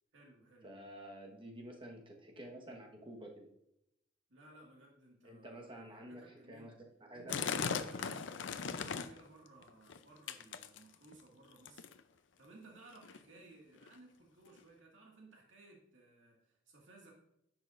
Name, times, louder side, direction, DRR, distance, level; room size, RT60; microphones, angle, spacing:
voice 1, 0.1-0.7 4.3-6.8 7.1-11.9 12.4-17.1, right 2 dB, 85° right, -2 dB, 1.9 m, -59 dB
voice 2, 0.6-3.5 5.2-6.2 6.5-6.7 7.1-7.5, right 1 dB, 30° right, 1 dB, 1.3 m, -50 dB
sound 1, 7.3-9.3 9.6-10.0 10.3-11.1 11.6-12.0 12.8-12.9 13.0-13.2 13.8-13.9 14.6-14.7, left 6 dB, 75° left, 0.5 m, -38 dB
10.0 x 7.1 x 2.5 m, 0.82 s
head